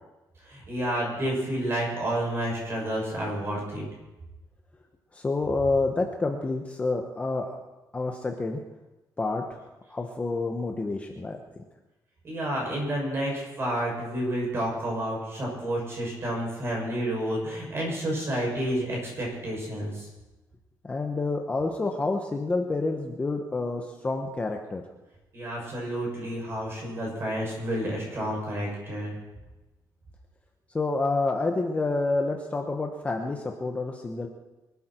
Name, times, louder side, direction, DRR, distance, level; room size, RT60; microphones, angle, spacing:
voice 1, 0.4-3.8 12.2-20.1 25.3-29.1, right 1 dB, 35° right, -2 dB, 7.0 m, -30 dB
voice 2, 5.1-7.6 7.9-8.6 9.2-9.6 9.9-11.4 20.8-24.8 30.7-34.3, left 3 dB, 20° left, 2 dB, 1.1 m, -28 dB
24.0 x 13.0 x 4.5 m, 1.0 s
cardioid pair, 170°, 7 cm